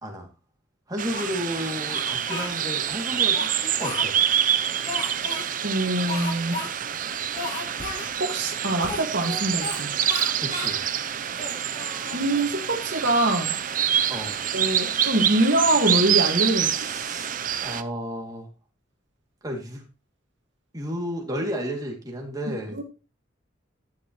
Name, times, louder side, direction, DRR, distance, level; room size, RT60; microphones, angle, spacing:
voice 1, 0.9-4.1 10.4-10.8 14.1-14.4 16.6-18.5 19.4-19.8 20.7-22.8, equal, 20° right, 2.5 m, -32 dB
sound 1, 1.0-17.8, right 9 dB, 45° right, 0.6 m, -26 dB
Speech, 1.1-2.5 3.1-4.4 4.9-5.5 6.1-6.7 7.0-7.1 7.3-8.1 8.8-9.8 10.1-10.8 11.3-12.6, left 2 dB, 40° left, 3.6 m, -34 dB
voice 2, 5.6-6.7 8.2-10.0 12.1-13.6 14.5-16.8 22.5-22.8, right 1 dB, 65° right, 1.9 m, -24 dB
11.5 x 9.9 x 3.1 m
head